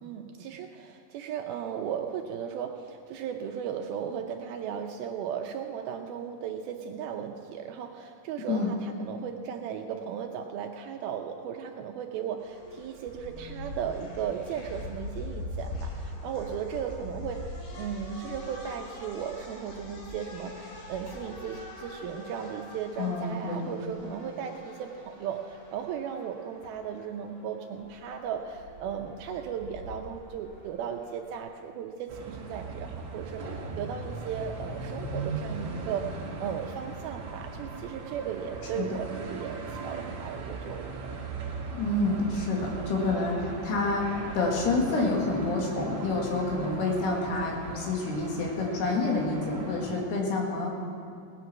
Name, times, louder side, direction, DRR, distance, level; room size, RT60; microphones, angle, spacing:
voice 1, 0.0-36.1 36.4-39.6 39.8-40.9, right 8 dB, 80° right, 4 dB, 2.4 m, -36 dB
sound 1, 12.4-31.4, left 2 dB, 60° left, 3.7 m, -43 dB
voice 2, 23.0-23.7 38.8-38.9 41.7-44.1 44.3-50.7, left 3 dB, 90° left, -1 dB, 4.0 m, -28 dB
sound 2, 32.1-50.0, right 4 dB, 55° right, 1.8 m, -39 dB
18.0 x 9.6 x 5.9 m, 2.5 s
omnidirectional pair, 4.6 m